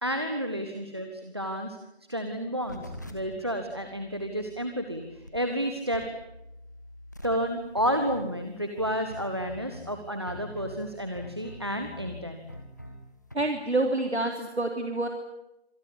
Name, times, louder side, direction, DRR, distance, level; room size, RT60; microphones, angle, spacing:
voice 1, 0.0-1.8 2.1-6.1 7.2-12.5, equal, 25° right, 6 dB, 1.4 m, -31 dB
sound 1, 2.6-13.4, left 1 dB, 15° left, 1.7 m, -45 dB
voice 2, 13.3-15.1, right 2 dB, 80° right, 3 dB, 3.5 m, -27 dB
26.5 x 19.5 x 10.0 m, 0.89 s
figure-of-eight pair, 170°, 32 cm